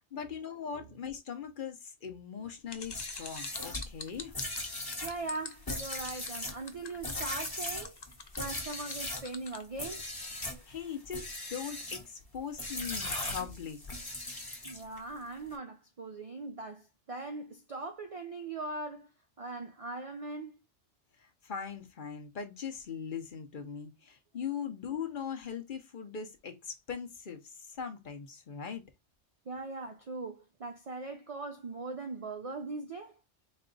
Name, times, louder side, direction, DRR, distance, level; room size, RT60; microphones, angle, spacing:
voice 1, 0.1-4.3 10.7-13.8 21.4-28.8, left 7 dB, 50° left, 0.8 m, -40 dB
sound 1, 2.7-9.6, left 4 dB, 35° left, 0.4 m, -44 dB
sound 2, 2.8-9.3 9.7-10.6 11.1-12.1 12.6-15.0, left 2 dB, 20° left, 0.9 m, -39 dB
voice 2, 5.0-7.9 8.4-10.0 14.6-19.1 19.4-20.5 29.5-33.2, right 3 dB, 60° right, 0.3 m, -40 dB
4.1 x 2.3 x 3.8 m
omnidirectional pair, 1.2 m